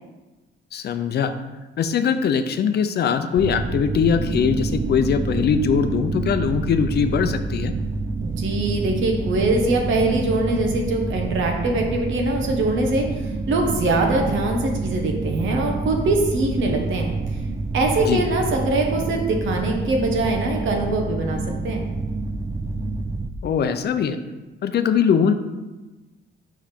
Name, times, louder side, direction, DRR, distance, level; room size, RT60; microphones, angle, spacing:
voice 1, 0.7-1.3 1.8-7.7 18.0-18.2 23.4-24.2 24.6-25.3, left 7 dB, 55° left, 9 dB, 0.5 m, -21 dB
sound 1, 3.4-23.3, right 3 dB, 15° right, 0.4 m, -27 dB
voice 2, 8.2-17.1 17.7-21.8, right 2 dB, 75° right, 2 dB, 1.3 m, -23 dB
5.8 x 5.1 x 4.4 m, 1.2 s
cardioid pair, 90°, 20 cm